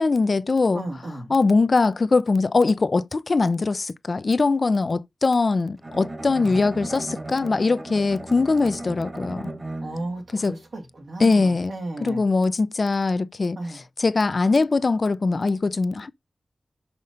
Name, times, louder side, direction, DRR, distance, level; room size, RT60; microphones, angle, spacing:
voice 1, 0.0-0.8 1.3-9.5 10.3-10.5 11.2-11.7 12.0-16.1, left 3 dB, 55° left, 0.5 m, -22 dB
voice 2, 0.7-1.3 6.4-6.6 9.8-12.2 13.6-13.8, right 2 dB, 80° right, 2.4 m, -34 dB
Bowed string instrument, 5.8-10.2, right 2 dB, 35° right, 1.5 m, -36 dB
5.8 x 5.5 x 5.1 m
wide cardioid pair, 70°, 0 cm